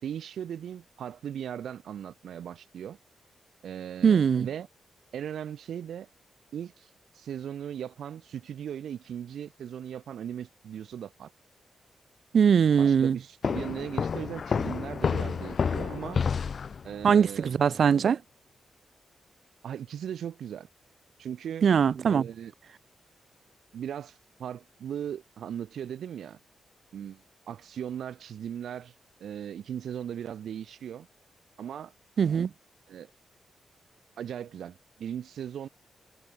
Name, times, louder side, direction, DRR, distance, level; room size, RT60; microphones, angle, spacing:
voice 1, 0.0-3.0 3.6-4.7 5.1-6.1 6.5-6.9 7.1-11.3 12.8-16.2 16.8-17.5 19.6-20.7 21.2-21.7 22.0-22.5 23.7-26.4 26.9-28.9 29.2-31.1 31.6-31.9 32.9-33.1 34.2-35.7, right 9 dB, 85° right, 3.4 m, -38 dB
voice 2, 4.0-4.5 12.3-13.2 17.0-18.2 21.6-22.2 32.2-32.5, right 7 dB, 65° right, 0.5 m, -21 dB
sound 1, 13.4-17.1, left 6 dB, 55° left, 0.5 m, -29 dB
cardioid pair, 95°, 0 cm